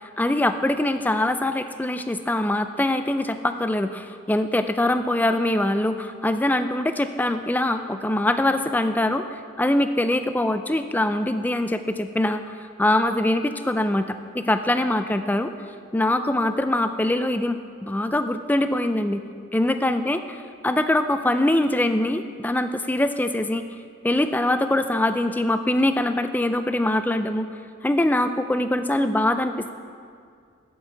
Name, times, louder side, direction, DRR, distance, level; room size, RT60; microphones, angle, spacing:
voice 1, 0.2-15.5 15.9-19.2 19.5-23.6 24.0-27.5 27.8-29.7, left 1 dB, 10° left, 9 dB, 0.3 m, -23 dB
7.6 x 7.2 x 7.9 m, 2.2 s
head